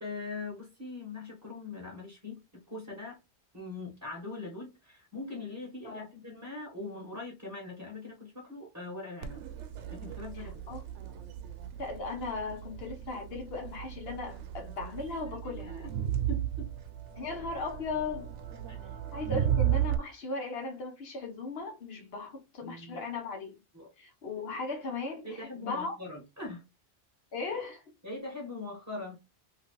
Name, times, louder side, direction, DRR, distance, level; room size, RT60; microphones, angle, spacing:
voice 1, 0.0-3.2 3.5-9.4 9.9-10.6 15.1-15.9 16.3-16.7 18.7-18.8 19.2-19.3 22.6-23.0 23.7-23.9 25.2-26.6 28.0-29.2, left 3 dB, 15° right, 1.0 m, -41 dB
Crowd, 9.2-20.0, right 11 dB, 80° right, 0.9 m, -35 dB
voice 2, 10.4-10.8 11.8-15.7 17.1-18.4 19.1-23.5 24.0-26.0 27.3-27.8, left 3 dB, 60° left, 1.1 m, -37 dB
2.9 x 2.8 x 2.9 m
omnidirectional pair, 1.2 m